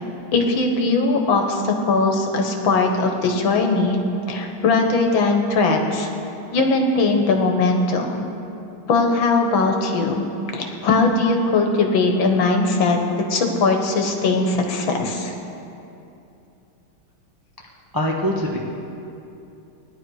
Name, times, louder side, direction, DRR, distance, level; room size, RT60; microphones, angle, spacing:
voice 1, 0.3-4.0 4.3-6.1 6.5-8.3 8.9-15.3, left 3 dB, 65° left, 3 dB, 1.9 m, -20 dB
voice 2, 17.9-18.6, equal, 15° right, -2 dB, 0.7 m, -22 dB
17.5 x 11.0 x 4.8 m, 2.8 s
omnidirectional pair, 2.4 m